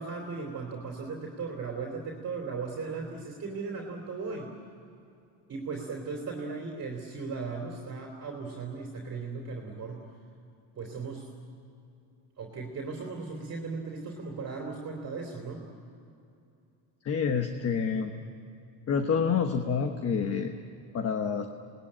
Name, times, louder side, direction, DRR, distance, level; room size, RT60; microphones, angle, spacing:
voice 1, 0.0-4.5 5.5-10.1 10.7-11.3 12.4-15.6, right 4 dB, 30° right, 0 dB, 3.2 m, -37 dB
voice 2, 17.0-18.1 18.9-20.5 20.9-21.5, left 6 dB, 30° left, 6 dB, 1.2 m, -28 dB
27.5 x 20.0 x 8.8 m, 2.6 s
cardioid pair, 165°, 48 cm